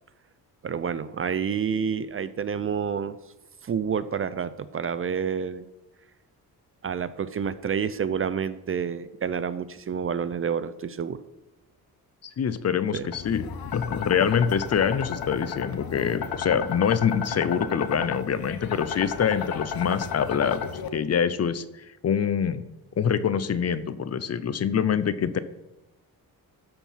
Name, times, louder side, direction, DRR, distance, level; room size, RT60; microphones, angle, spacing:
voice 1, 0.6-3.2 3.6-5.7 6.8-11.2 12.9-13.1, right 7 dB, 35° right, 14 dB, 0.5 m, -29 dB
voice 2, 12.2-13.5 13.7-21.6 22.0-22.6 23.0-25.4, left 7 dB, 40° left, 14 dB, 0.6 m, -25 dB
sound 1, 13.1-20.9, left 7 dB, 65° left, 1.0 m, -33 dB
13.0 x 4.5 x 5.7 m, 0.95 s
cardioid pair, 85°, 38 cm